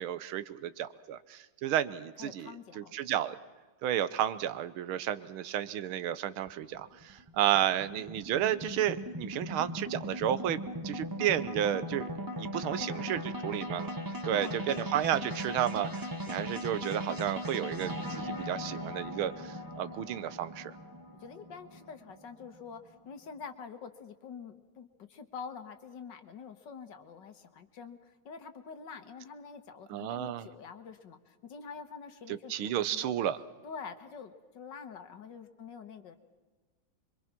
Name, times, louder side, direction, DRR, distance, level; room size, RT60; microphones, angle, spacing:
voice 1, 0.0-3.4 3.8-12.1 12.4-14.0 14.2-20.7 29.9-30.5 32.3-33.4, right 11 dB, 90° right, 15 dB, 1.7 m, -32 dB
voice 2, 2.2-2.9 12.7-13.3 14.3-14.9 21.2-33.1 33.6-36.2, left 6 dB, 60° left, 9 dB, 1.9 m, -46 dB
sound 1, 6.5-22.9, equal, 15° right, 0.8 m, -39 dB
25.5 x 23.5 x 6.0 m, 1.4 s
omnidirectional pair, 2.2 m